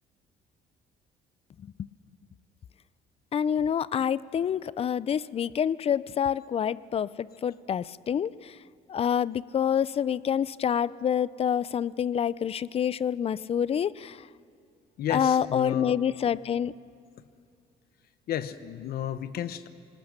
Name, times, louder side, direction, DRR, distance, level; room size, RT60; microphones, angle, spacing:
voice 1, 3.3-8.6 8.9-14.2 15.1-16.7, left 8 dB, 35° left, 20 dB, 0.5 m, -27 dB
voice 2, 15.0-15.9 18.3-19.7, left 10 dB, 65° left, 12 dB, 1.1 m, -32 dB
26.5 x 20.0 x 6.7 m, 2.3 s
cardioid pair, 110°, 17 cm